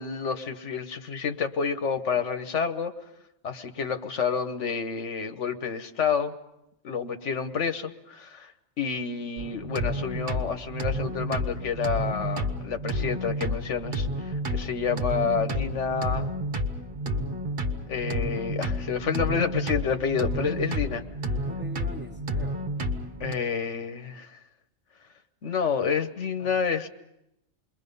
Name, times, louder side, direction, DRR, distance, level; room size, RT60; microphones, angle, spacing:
voice 1, 0.0-2.9 3.4-6.3 6.8-8.5 8.8-16.3 17.9-21.0 23.2-24.4 25.4-26.9, left 6 dB, 85° left, 8 dB, 1.4 m, -29 dB
sound 1, 9.4-23.3, equal, 50° right, 1.4 m, -30 dB
voice 2, 20.4-21.0 21.4-22.6 26.4-26.6, equal, 10° right, 2 dB, 1.3 m, -44 dB
28.5 x 22.0 x 5.4 m, 0.83 s
omnidirectional pair, 1.2 m